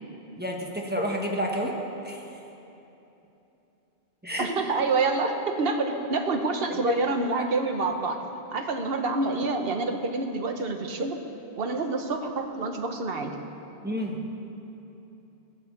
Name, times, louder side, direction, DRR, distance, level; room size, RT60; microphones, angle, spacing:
voice 1, 0.4-1.8 2.0-2.2 4.2-4.5 6.8-6.9 13.8-14.2, equal, 10° right, -1 dB, 1.3 m, -29 dB
voice 2, 4.4-8.2 8.5-11.2 11.6-13.3, right 3 dB, 60° right, 5 dB, 1.2 m, -27 dB
18.0 x 7.4 x 7.1 m, 2.9 s
omnidirectional pair, 1.1 m